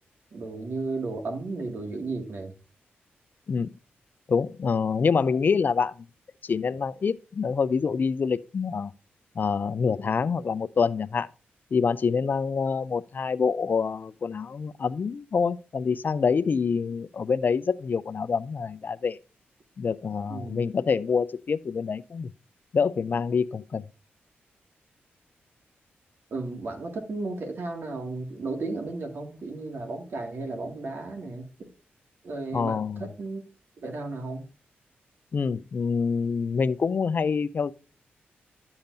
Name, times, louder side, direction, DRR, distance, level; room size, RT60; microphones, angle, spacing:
voice 1, 0.3-2.5 20.3-20.7 26.3-31.7 32.2-33.4 33.8-34.5, right 3 dB, 60° right, 2.1 m, -34 dB
voice 2, 4.3-5.9 6.4-8.9 9.4-11.3 11.7-19.2 19.8-22.3 22.7-23.8 32.5-33.1 35.3-37.7, left 5 dB, 50° left, 0.4 m, -26 dB
11.5 x 7.1 x 2.6 m
cardioid pair, 75°, 4 cm